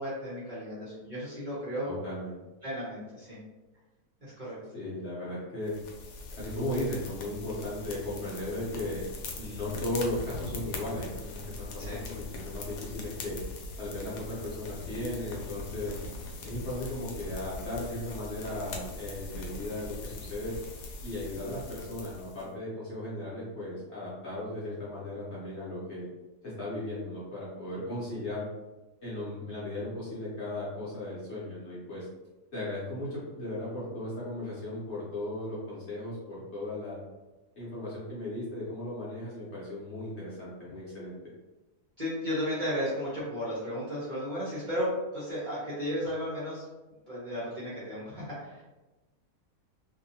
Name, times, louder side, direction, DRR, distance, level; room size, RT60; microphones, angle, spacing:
voice 1, 0.0-1.9 2.6-3.4 4.2-4.6 11.8-12.0 42.0-46.6 47.1-48.6, equal, 40° right, -9 dB, 0.8 m, -34 dB
voice 2, 1.8-2.4 4.7-5.8 6.4-9.0 9.4-13.4 13.8-15.9 16.4-20.6 21.0-26.1 26.4-28.5 29.0-32.1 32.5-37.0 37.6-41.2, left 1 dB, 50° left, -8 dB, 0.9 m, -36 dB
sound 1, 5.7-22.5, left 2 dB, 80° left, 1.1 m, -41 dB
2.7 x 2.6 x 2.7 m, 1.1 s
omnidirectional pair, 1.7 m